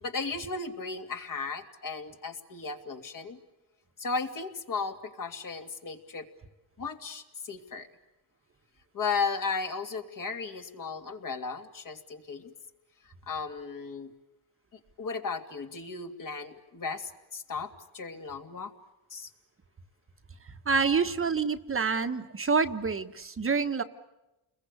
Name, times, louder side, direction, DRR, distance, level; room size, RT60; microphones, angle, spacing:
voice 1, 0.0-3.4 4.0-6.3 6.8-7.9 8.9-12.5 13.3-14.1 15.0-18.7 19.1-19.3, left 4 dB, 45° left, 4 dB, 2.9 m, -35 dB
voice 2, 20.6-23.8, right 5 dB, 30° right, 7 dB, 1.4 m, -27 dB
30.0 x 22.0 x 8.4 m, 0.98 s
cardioid pair, 100°, 45 cm